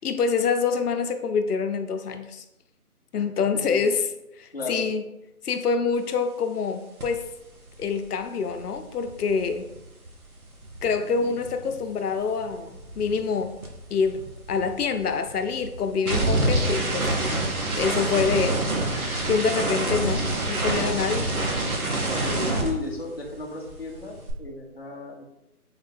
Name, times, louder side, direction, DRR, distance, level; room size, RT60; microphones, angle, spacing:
voice 1, 0.0-2.4 3.1-4.1 4.4-5.0 5.4-7.3 7.8-9.7 10.8-13.5 13.9-17.2 17.7-18.6 19.3-21.3, left 5 dB, 90° left, 7 dB, 0.6 m, -26 dB
voice 2, 4.5-4.9 22.2-25.2, left 3 dB, 45° left, -1 dB, 0.5 m, -34 dB
sound 1, 7.0-7.2 7.5-11.9 12.1-23.4 23.7-24.3, right 2 dB, 70° right, 1.0 m, -28 dB
3.7 x 2.7 x 3.6 m, 0.90 s
figure-of-eight pair, 180°, 45 cm